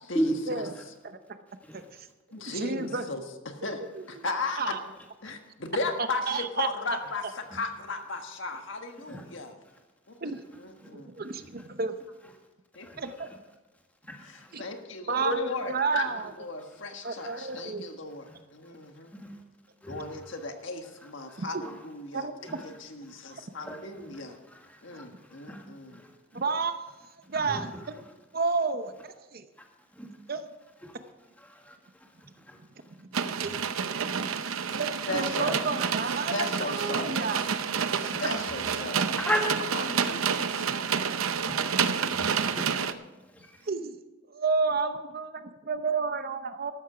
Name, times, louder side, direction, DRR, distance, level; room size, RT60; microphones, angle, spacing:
voice 1, 1.0-1.4 1.7-1.8 2.4-3.1 4.0-4.2 4.6-4.8 6.3-6.7 10.2-10.4 10.9-11.9 13.0-13.1 14.5-14.6 15.1-16.2 17.0-18.0 22.1-22.6 23.3-23.4 26.3-26.8 27.3-27.7 28.3-29.4 30.3-30.4 33.0-33.1 33.3-33.5 34.7-37.4 38.0-38.1 43.7-44.0 44.3-46.7, right 4 dB, 45° right, 9 dB, 0.7 m, -31 dB
voice 2, 2.3-3.8 4.1-4.7 5.2-9.5 10.1-11.1 12.7-12.9 14.2-16.1 16.4-19.1 19.9-24.4 24.8-26.0 35.1-35.6 36.3-37.3 37.9-39.1 39.7-40.7, left 3 dB, 60° left, 5 dB, 1.5 m, -36 dB
voice 3, 14.0-14.5 17.2-17.6 18.3-18.4 19.1-19.4 19.8-20.4 21.0-21.8 22.5-22.6 23.1-23.2 23.6-23.8 24.3-25.7 25.9-26.1 27.3-27.8 29.6-29.7 29.9-30.1 30.8-31.0 31.4-32.1 32.4-32.6 33.4-33.5 34.0-34.5 35.1-35.8 37.0-37.1 38.1-38.2 39.2-39.6 40.1-40.3 40.8-40.9 41.5-43.0 43.3-43.7, equal, 5° left, 2 dB, 1.7 m, -36 dB
sound 1, 33.1-42.9, right 6 dB, 75° right, 0.7 m, -29 dB
13.5 x 12.5 x 5.0 m, 1.2 s
head